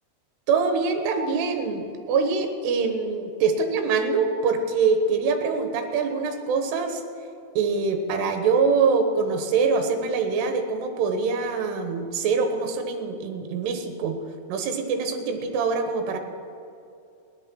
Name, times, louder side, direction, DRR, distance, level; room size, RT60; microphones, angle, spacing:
voice 1, 0.5-7.0 7.6-14.2 14.5-16.2, right 5 dB, 75° right, 6 dB, 3.3 m, -24 dB
17.0 x 11.5 x 6.2 m, 2.6 s
omnidirectional pair, 4.9 m